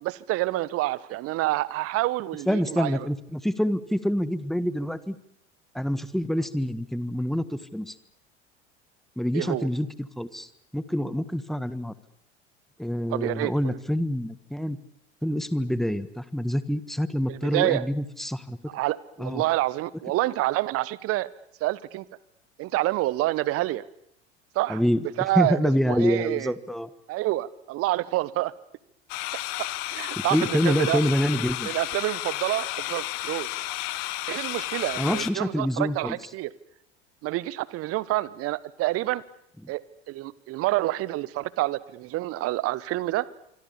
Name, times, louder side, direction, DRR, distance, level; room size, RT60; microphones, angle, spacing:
voice 1, 0.0-3.1 9.3-9.7 13.1-13.8 17.3-17.8 18.7-21.3 21.6-22.0 22.6-23.8 24.5-24.8 25.2-25.6 25.9-26.5 27.1-28.5 29.6-31.0 31.6-33.6 34.3-36.5 37.2-39.2 39.7-39.8 40.1-43.3, right 17 dB, 40° right, 20 dB, 1.2 m, -28 dB
voice 2, 2.5-5.2 5.7-7.9 9.2-10.5 10.7-11.9 12.8-14.8 15.2-18.6 19.2-19.4 24.7-26.9 30.3-31.7 35.0-36.1, equal, ahead, 16 dB, 1.5 m, -26 dB
sound 1, 29.1-35.3, left 17 dB, 50° left, 1.7 m, -32 dB
25.5 x 25.5 x 7.3 m, 0.73 s
figure-of-eight pair, 75°, 35 cm